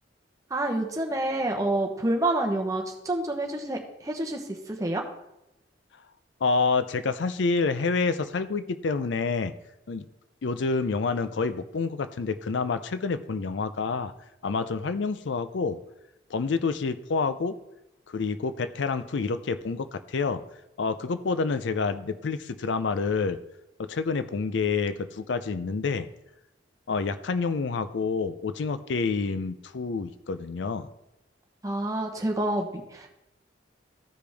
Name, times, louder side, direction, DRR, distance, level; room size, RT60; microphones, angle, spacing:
voice 1, 0.5-5.0 31.6-33.1, right 1 dB, 15° right, 2 dB, 0.9 m, -28 dB
voice 2, 6.4-9.5 9.9-10.1 10.4-14.1 14.4-15.8 16.3-17.6 18.1-20.4 20.8-23.4 23.8-26.1 26.9-30.9, left 4 dB, 70° left, 12 dB, 0.5 m, -28 dB
14.5 x 5.0 x 3.4 m, 0.89 s
head